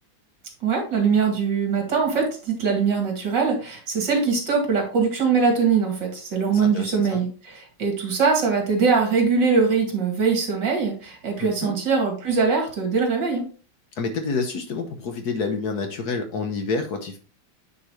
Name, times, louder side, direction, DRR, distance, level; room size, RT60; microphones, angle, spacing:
voice 1, 0.6-13.5, right 5 dB, 65° right, 1 dB, 2.8 m, -22 dB
voice 2, 6.5-7.2 11.4-11.7 14.0-17.2, left 4 dB, 60° left, 6 dB, 1.3 m, -28 dB
9.3 x 4.6 x 3.1 m, 0.38 s
omnidirectional pair, 2.1 m